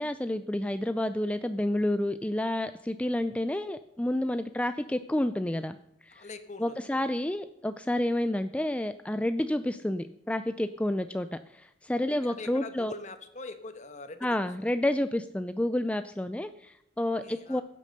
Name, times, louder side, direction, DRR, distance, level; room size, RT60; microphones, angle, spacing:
voice 1, 0.0-5.8 6.0-6.3 6.6-12.9 14.2-17.6, left 1 dB, 5° left, 10 dB, 0.4 m, -30 dB
voice 2, 6.1-7.1 12.1-14.4 17.2-17.6, left 3 dB, 40° left, 9 dB, 1.3 m, -43 dB
16.0 x 8.5 x 6.6 m, 0.84 s
head